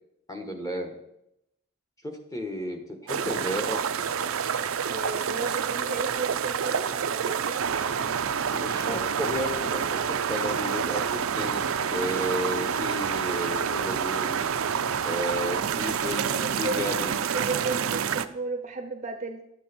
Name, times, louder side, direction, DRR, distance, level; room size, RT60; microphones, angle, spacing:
voice 1, 0.3-0.9 2.0-3.8 8.5-11.6 11.9-14.4 15.0-17.1, equal, 15° left, 3 dB, 1.3 m, -33 dB
sound 1, 3.1-18.3, right 7 dB, 75° right, 0.5 m, -28 dB
voice 2, 4.9-8.2 15.5-16.9 17.3-19.4, right 3 dB, 35° right, 7 dB, 0.7 m, -35 dB
11.5 x 7.5 x 4.4 m, 0.81 s
head